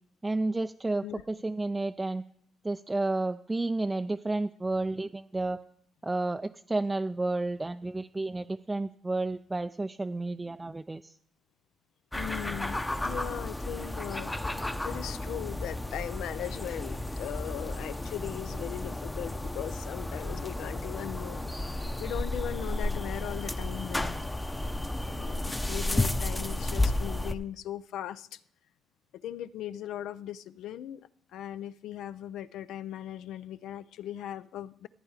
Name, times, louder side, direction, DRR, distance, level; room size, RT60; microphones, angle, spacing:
voice 1, 0.2-2.2 2.6-5.6 6.0-11.1, right 2 dB, 15° right, 8 dB, 0.4 m, -31 dB
voice 2, 12.1-14.3 14.8-24.2 25.0-28.4 29.2-31.0 31.3-34.9, left 11 dB, 80° left, 15 dB, 0.5 m, -39 dB
sound 1, 12.1-27.3, left 1 dB, 10° left, 0.7 m, -33 dB
14.5 x 9.0 x 4.8 m, 0.67 s
cardioid pair, 100°, 0 cm